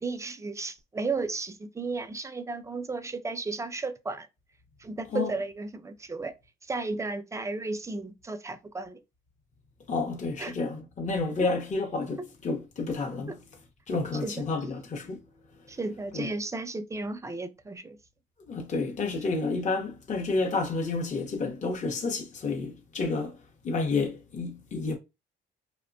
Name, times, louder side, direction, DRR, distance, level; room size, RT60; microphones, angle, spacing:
voice 1, 0.0-4.3 4.8-6.3 6.7-9.0 10.4-10.5 12.2-12.3 14.2-14.5 15.7-18.0, right 3 dB, 15° right, 0.4 m, -34 dB
voice 2, 9.9-13.3 13.9-15.2 16.1-16.3 18.5-23.4 23.6-25.0, left 3 dB, 35° left, 0.7 m, -30 dB
2.9 x 2.1 x 2.5 m
cardioid pair, 90°, 20 cm